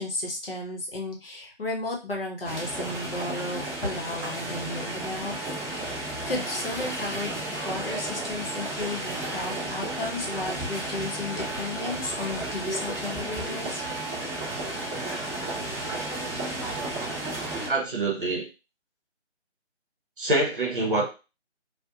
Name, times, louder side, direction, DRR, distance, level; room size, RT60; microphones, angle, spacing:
voice 1, 0.0-6.0 6.3-13.8, left 2 dB, 50° left, 0 dB, 0.8 m, -34 dB
sound 1, 2.4-17.7, right 2 dB, ahead, 0.6 m, -33 dB
voice 2, 17.7-18.5 20.2-21.1, right 2 dB, 45° right, 0 dB, 0.8 m, -25 dB
2.5 x 2.1 x 2.7 m, 0.30 s
figure-of-eight pair, 160°, 35 cm